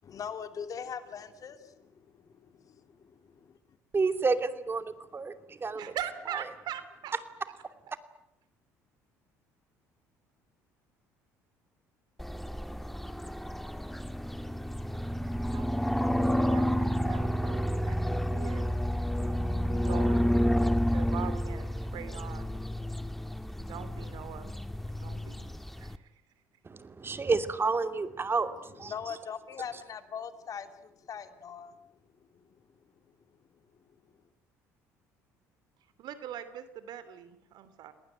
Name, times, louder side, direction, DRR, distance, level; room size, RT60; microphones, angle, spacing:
voice 1, 0.0-3.6 28.8-31.8 32.3-32.4, left 7 dB, 50° left, 9 dB, 2.9 m, -41 dB
voice 2, 3.9-5.9 26.6-28.9, right 4 dB, 30° right, 9 dB, 2.7 m, -30 dB
voice 3, 5.7-7.2 15.5-18.6 19.2-20.3 20.9-22.5 23.6-24.5 25.0-25.5 25.8-26.1 36.0-37.9, right 10 dB, 65° right, 13 dB, 3.2 m, -42 dB
sound 1, 12.2-26.0, equal, ahead, 1.8 m, -30 dB
29.0 x 19.5 x 9.1 m, 0.83 s
hypercardioid pair, 65°, 8 cm